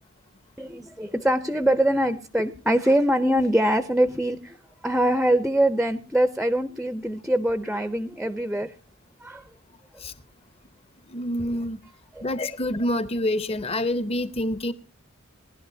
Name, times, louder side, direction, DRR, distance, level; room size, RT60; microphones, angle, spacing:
voice 1, 0.6-4.6 4.8-8.7 9.2-9.4 12.1-12.3, right 1 dB, 5° right, 0.5 m, -23 dB
voice 2, 11.1-11.8 12.2-14.7, left 1 dB, 30° left, 0.7 m, -27 dB
19.5 x 11.5 x 2.7 m
head